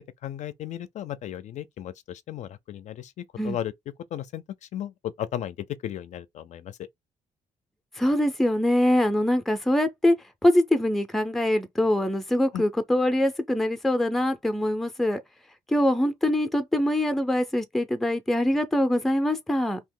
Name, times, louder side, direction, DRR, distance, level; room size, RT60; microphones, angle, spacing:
voice 1, 0.2-3.7 4.1-6.9 12.5-12.6, left 11 dB, 60° left, 0.4 m, -35 dB
voice 2, 8.0-10.2 10.4-15.2 15.7-19.8, left 1 dB, ahead, 0.4 m, -23 dB
2.8 x 2.8 x 3.6 m
cardioid pair, 175°, 14 cm